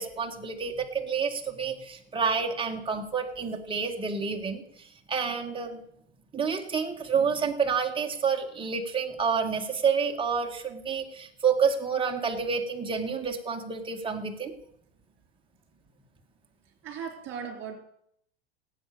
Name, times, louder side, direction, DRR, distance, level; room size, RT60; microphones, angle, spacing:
voice 1, 0.0-5.8 6.3-14.5, right 6 dB, 15° right, 2 dB, 2.0 m, -29 dB
voice 2, 16.8-17.8, right 7 dB, 35° right, 5 dB, 4.2 m, -37 dB
17.0 x 8.3 x 6.9 m, 0.72 s
hypercardioid pair, 100°, 34 cm